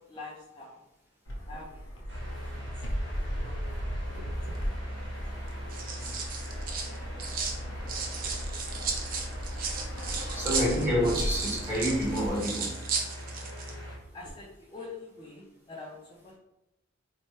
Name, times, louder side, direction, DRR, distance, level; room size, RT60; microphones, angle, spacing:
voice 1, 0.1-0.8 1.5-1.8 2.4-3.8 4.3-4.4 6.0-6.1 6.6-6.8 7.1-7.9 8.2-8.3 14.1-16.4, left 3 dB, 25° left, -4 dB, 0.5 m, -47 dB
Fixed-wing aircraft airplane, 1.3-12.3, equal, 75° left, 0.8 m, -37 dB
sound 1, 2.1-14.0, equal, 65° right, 1.4 m, -40 dB
sound 2, 4.1-4.6 5.5-7.6 7.9-13.7 14.0-14.3, right 5 dB, 45° right, 0.5 m, -35 dB
voice 2, 10.3-12.7, equal, 10° right, -4 dB, 1.0 m, -28 dB
4.1 x 2.1 x 3.1 m, 0.89 s
head